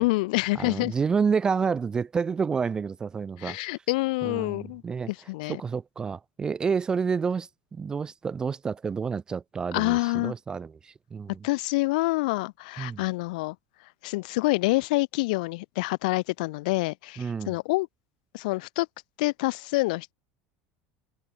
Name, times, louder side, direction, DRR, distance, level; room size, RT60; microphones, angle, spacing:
voice 1, 0.0-0.9 3.4-4.8 5.1-5.6 9.7-10.3 11.4-13.5 14.0-17.9 18.3-18.9 19.2-20.1, left 23 dB, 80° left, 1.4 m, -27 dB
voice 2, 0.6-3.6 4.2-5.1 5.5-11.4 12.8-13.0 17.2-17.5, right 5 dB, 20° right, 0.3 m, -29 dB
supercardioid pair, 145°, 4 cm